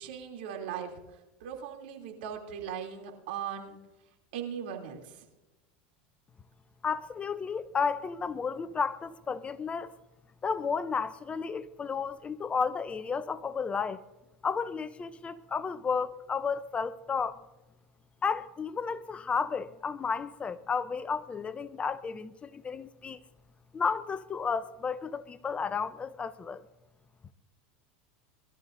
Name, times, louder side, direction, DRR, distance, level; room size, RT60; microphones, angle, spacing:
voice 1, 0.0-3.8 4.3-5.2, right 8 dB, 75° right, 2.9 m, -39 dB
voice 2, 6.8-9.9 10.4-14.0 14.4-17.4 18.2-23.2 23.7-26.6, left 5 dB, 20° left, 0.6 m, -32 dB
22.0 x 13.0 x 2.6 m
supercardioid pair, 115°, 6 cm